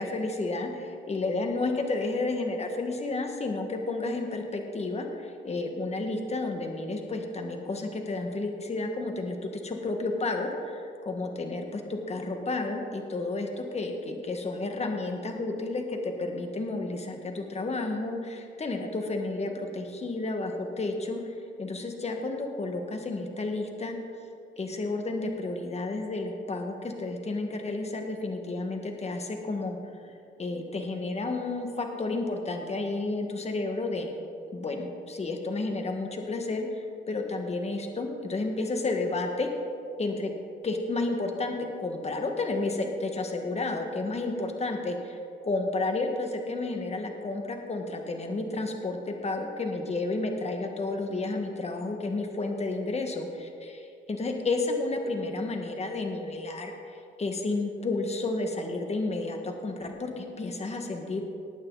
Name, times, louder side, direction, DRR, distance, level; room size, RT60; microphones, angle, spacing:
voice 1, 0.0-24.0 24.6-29.8 30.0-30.1 30.4-34.1 34.5-39.5 40.0-40.3 40.6-61.2, left 2 dB, 30° left, 3 dB, 1.7 m, -31 dB
19.0 x 8.7 x 4.1 m, 2.5 s
cardioid pair, 90°, 20 cm